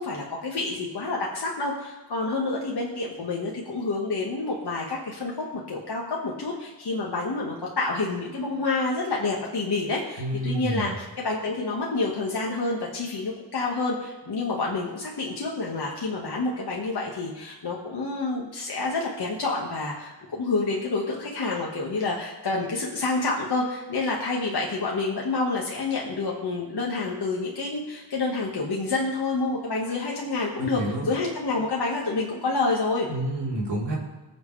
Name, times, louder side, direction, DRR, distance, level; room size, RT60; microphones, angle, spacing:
voice 1, 0.0-33.1, left 3 dB, 60° left, -3 dB, 1.8 m, -28 dB
voice 2, 10.2-10.9 30.6-31.0 33.1-33.9, right 1 dB, 70° right, -5 dB, 4.1 m, -29 dB
21.0 x 8.0 x 3.4 m, 1.2 s
wide cardioid pair, 90°, 44 cm